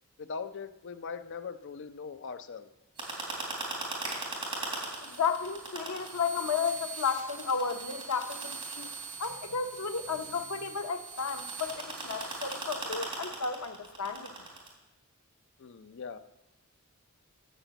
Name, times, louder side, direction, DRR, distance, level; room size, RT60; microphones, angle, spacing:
voice 1, 0.2-2.7 15.6-16.2, left 5 dB, 55° left, 11 dB, 0.5 m, -40 dB
sound 1, 3.0-14.7, right 3 dB, 25° right, 3.3 m, -39 dB
voice 2, 5.0-8.9 9.2-14.3, left 6 dB, 90° left, 6 dB, 0.9 m, -33 dB
13.0 x 5.0 x 8.0 m, 0.99 s
head